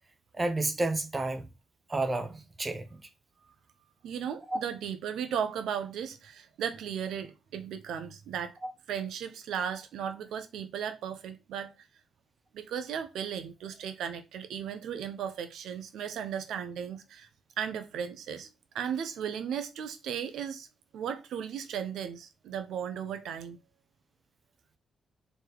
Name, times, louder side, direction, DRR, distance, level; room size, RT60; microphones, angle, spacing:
voice 1, 0.3-1.5 1.9-3.0 4.5-4.6 8.6-8.7, right 2 dB, 20° right, 1.1 m, -31 dB
voice 2, 4.0-8.5 8.9-11.7 12.5-17.3 17.6-18.5 18.7-20.7 20.9-23.6, right 8 dB, 90° right, 0.9 m, -36 dB
4.6 x 4.5 x 4.9 m
cardioid pair, 130°, 0 cm